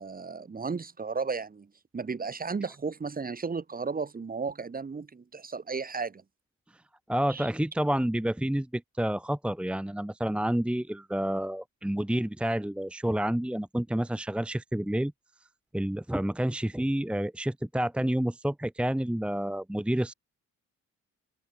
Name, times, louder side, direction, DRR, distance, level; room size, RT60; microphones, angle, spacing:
voice 1, 0.0-6.2 7.3-7.5, right 5 dB, 30° right, 2.1 m, -34 dB
voice 2, 7.1-15.1 15.7-20.1, right 1 dB, 5° right, 1.1 m, -29 dB
cardioid pair, 90°, 30 cm